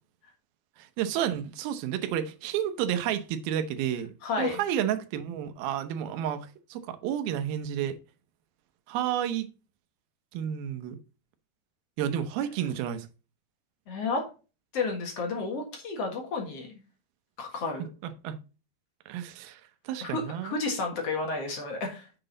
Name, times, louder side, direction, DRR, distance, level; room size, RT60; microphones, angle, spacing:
voice 1, 0.8-4.1 4.4-8.0 8.9-9.5 10.3-11.0 12.0-13.1 18.0-18.4 19.1-19.6 19.9-20.5, right 10 dB, 75° right, 2.5 m, -31 dB
voice 2, 4.2-4.6 13.9-14.2 14.7-16.7 17.4-17.9 20.0-22.0, left 3 dB, 55° left, 1.8 m, -31 dB
7.8 x 6.0 x 3.9 m
omnidirectional pair, 4.8 m